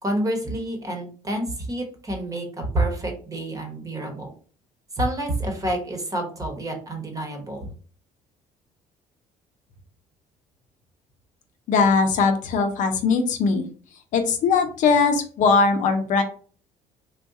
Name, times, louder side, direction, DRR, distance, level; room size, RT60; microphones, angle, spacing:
voice 1, 0.0-4.3 5.0-7.7, right 1 dB, 25° right, 2 dB, 1.1 m, -28 dB
voice 2, 11.7-13.7 14.1-16.2, left 4 dB, 60° left, 6 dB, 0.7 m, -20 dB
3.6 x 2.4 x 2.6 m, 0.42 s
cardioid pair, 110°, 14 cm